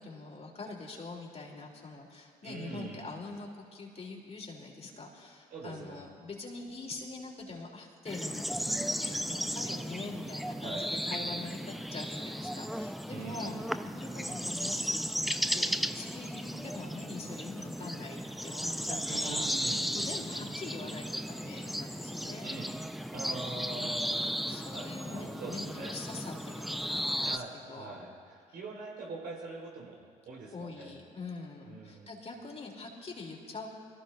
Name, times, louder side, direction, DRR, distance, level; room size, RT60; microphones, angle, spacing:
voice 1, 0.0-13.6 13.8-22.5 24.5-27.4 27.7-28.0 28.5-28.6 30.5-33.7, left 3 dB, 40° left, -1 dB, 3.2 m, -44 dB
voice 2, 2.4-3.1 5.5-6.0 10.6-10.9 13.1-13.5 19.1-20.8 22.4-22.7 23.1-25.9 27.2-30.9 31.6-32.1, right 3 dB, 70° right, -3 dB, 4.4 m, -43 dB
sound 1, 8.1-27.4, equal, ahead, 0.5 m, -35 dB
24.0 x 14.5 x 2.6 m, 2.1 s
hypercardioid pair, 45°, 17 cm